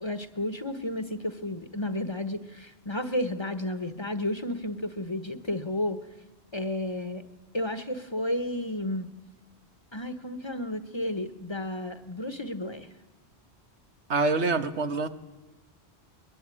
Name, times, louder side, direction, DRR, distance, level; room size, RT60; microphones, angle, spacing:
voice 1, 0.0-6.0 6.5-7.2 7.5-9.1 9.9-12.9, left 1 dB, 25° left, 10 dB, 1.2 m, -32 dB
voice 2, 14.1-15.1, right 3 dB, 85° right, 8 dB, 1.7 m, -25 dB
22.0 x 21.0 x 9.9 m, 1.1 s
omnidirectional pair, 1.1 m